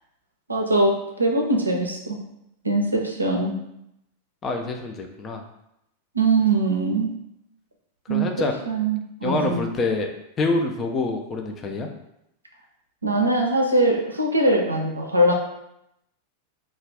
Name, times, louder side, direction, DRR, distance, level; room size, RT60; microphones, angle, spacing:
voice 1, 0.5-2.2 2.6-3.6 6.1-7.1 8.1-8.3 8.7-9.6 13.0-15.3, right 2 dB, 80° right, 1 dB, 0.5 m, -22 dB
voice 2, 4.4-5.4 8.1-8.5 9.2-11.9, left 3 dB, 25° left, 4 dB, 0.4 m, -26 dB
2.3 x 2.3 x 3.3 m, 0.82 s
figure-of-eight pair, 90°, 0 cm